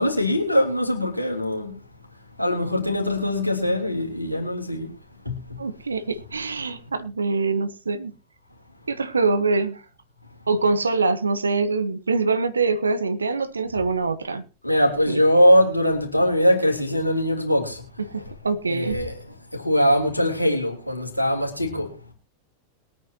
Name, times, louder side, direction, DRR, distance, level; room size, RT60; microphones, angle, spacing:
voice 1, 0.0-1.7 2.4-4.9 5.2-5.4 14.6-17.8 18.7-19.1 19.6-21.9, equal, 85° left, 3.1 m, -21 dB
voice 2, 5.6-8.1 8.9-9.8 10.5-14.5 15.1-15.2 18.0-19.0, right 4 dB, 75° right, 1.1 m, -24 dB
22.0 x 9.2 x 2.9 m
figure-of-eight pair, 90°, 0 cm